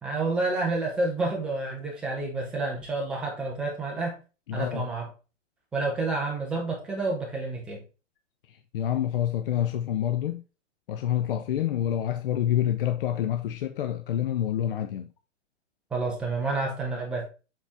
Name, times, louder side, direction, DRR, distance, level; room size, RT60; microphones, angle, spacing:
voice 1, 0.0-4.2 4.5-5.1 5.7-7.8 15.9-17.3, right 3 dB, 5° right, 0.4 m, -29 dB
voice 2, 4.5-4.9 8.7-10.4 10.9-15.1, left 11 dB, 50° left, 0.6 m, -27 dB
7.4 x 4.1 x 3.4 m
hypercardioid pair, 145°, 37 cm